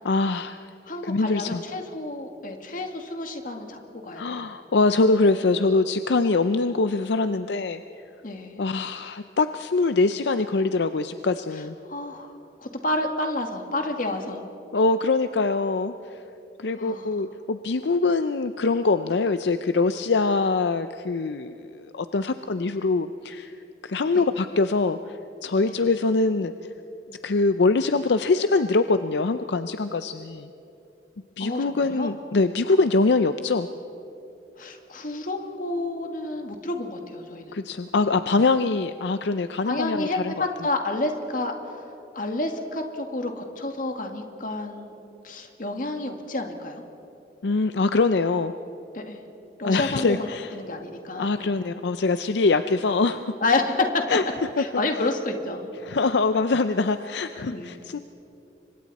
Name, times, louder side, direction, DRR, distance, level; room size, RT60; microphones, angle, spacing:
voice 1, 0.0-0.7 1.0-1.6 4.2-7.8 8.6-11.8 14.7-16.2 16.6-23.5 23.8-26.5 27.2-30.5 31.4-33.7 37.5-40.5 47.4-48.5 49.6-50.5 51.2-53.3 54.1-54.2 54.6-54.7 55.8-58.0, left 3 dB, 75° left, 10 dB, 0.5 m, -23 dB
voice 2, 0.9-4.4 8.2-8.6 11.5-12.3 12.6-14.4 16.8-17.1 25.6-25.8 31.4-32.1 34.6-37.5 39.6-41.5 42.1-46.8 48.9-49.2 49.6-51.5 53.4-54.2 54.6-55.7 57.5-57.7, left 2 dB, 50° left, 4 dB, 2.0 m, -29 dB
30.0 x 25.0 x 4.2 m, 2.9 s
head